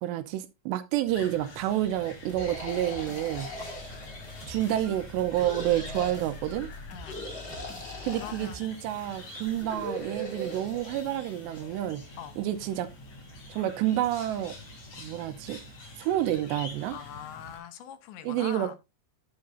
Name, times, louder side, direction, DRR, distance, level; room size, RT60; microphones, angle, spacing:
voice 1, 0.0-3.5 4.5-6.7 8.0-12.0 12.4-12.9 13.5-14.6 15.0-15.6 16.0-17.0 18.2-18.8, right 12 dB, 80° right, 2.8 m, -29 dB
sound 1, 1.1-17.6, left 2 dB, 40° left, 4.4 m, -46 dB
sound 2, 2.3-12.3, left 1 dB, 25° left, 3.3 m, -48 dB
sound 3, 2.4-4.6 5.3-6.2 7.0-8.7 9.5-11.0, equal, 60° left, 0.6 m, -40 dB
voice 2, 6.9-7.3 8.1-8.7 12.2-12.4 16.9-18.8, left 10 dB, 80° left, 3.3 m, -43 dB
12.0 x 7.6 x 2.7 m
omnidirectional pair, 5.2 m